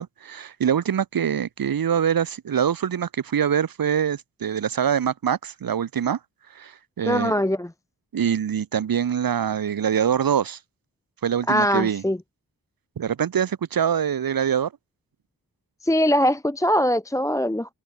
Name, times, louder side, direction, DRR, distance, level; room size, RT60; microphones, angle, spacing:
voice 1, 0.0-6.2 6.5-7.3 8.1-10.6 11.2-12.0 13.0-14.7, right 8 dB, 65° right, 0.9 m, -24 dB
voice 2, 7.1-7.7 11.5-12.2 15.8-17.7, equal, 10° left, 0.8 m, -22 dB
wide cardioid pair, 105°, 38 cm